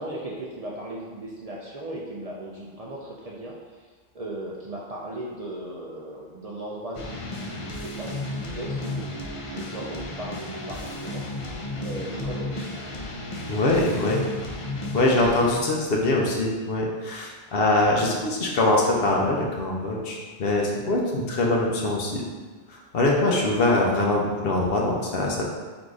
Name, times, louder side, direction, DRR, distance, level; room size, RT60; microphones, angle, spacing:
voice 1, 0.0-3.6 4.1-9.2 9.5-11.3 11.8-12.7, right 1 dB, 50° right, -4 dB, 0.5 m, -37 dB
sound 1, 7.0-15.6, left 2 dB, 45° left, 0.4 m, -33 dB
voice 2, 13.5-14.2 14.9-22.2 22.7-25.4, left 2 dB, 70° left, -1 dB, 0.9 m, -23 dB
3.9 x 2.5 x 4.6 m, 1.4 s
omnidirectional pair, 1.0 m